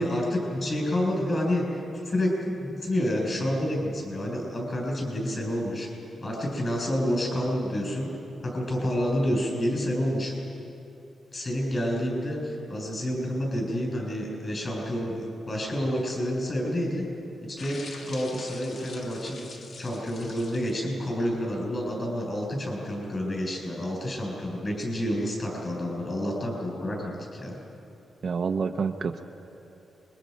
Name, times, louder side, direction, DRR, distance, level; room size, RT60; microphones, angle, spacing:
voice 1, 0.0-5.9 6.2-8.1 8.4-10.3 11.3-17.1 17.5-19.4 19.8-27.6, equal, 30° left, -1 dB, 6.7 m, -29 dB
sound 1, 17.6-20.8, left 3 dB, 60° left, 2.6 m, -45 dB
voice 2, 28.2-29.2, right 5 dB, 45° right, 6 dB, 0.8 m, -28 dB
28.0 x 22.5 x 5.3 m, 2.8 s
wide cardioid pair, 140°, 0 cm